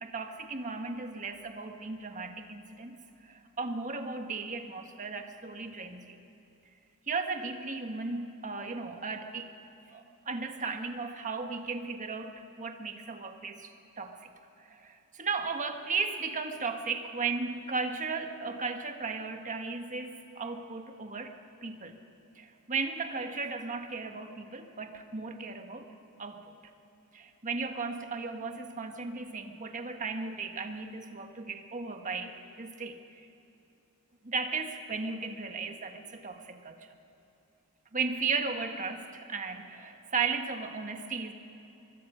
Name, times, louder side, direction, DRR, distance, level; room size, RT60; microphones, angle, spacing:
voice 1, 0.0-3.0 3.2-6.2 7.1-9.5 9.9-14.3 14.6-21.4 21.6-22.0 22.3-25.9 26.2-26.4 27.1-33.3 34.2-36.9 37.9-41.3, right 4 dB, 35° right, 5 dB, 1.4 m, -36 dB
24.0 x 22.5 x 5.7 m, 2.9 s
head